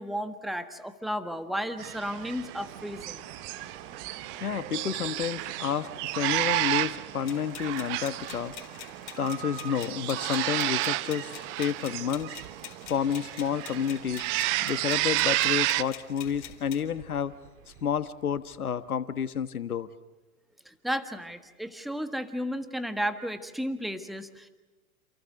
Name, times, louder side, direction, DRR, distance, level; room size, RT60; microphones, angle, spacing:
voice 1, 0.0-3.2 20.6-24.5, equal, ahead, 9 dB, 1.5 m, -33 dB
Train, 1.7-19.3, right 8 dB, 45° right, 3.6 m, -49 dB
sound 1, 1.8-15.8, right 18 dB, 25° right, 0.8 m, -31 dB
voice 2, 4.4-8.5 9.2-12.4 12.9-14.2 14.6-17.3 17.8-19.9, left 8 dB, 75° left, 12 dB, 1.5 m, -30 dB
sound 2, 7.3-16.8, left 12 dB, 45° left, 4.1 m, -45 dB
28.5 x 28.5 x 6.6 m, 1.1 s
hypercardioid pair, 115°, 44 cm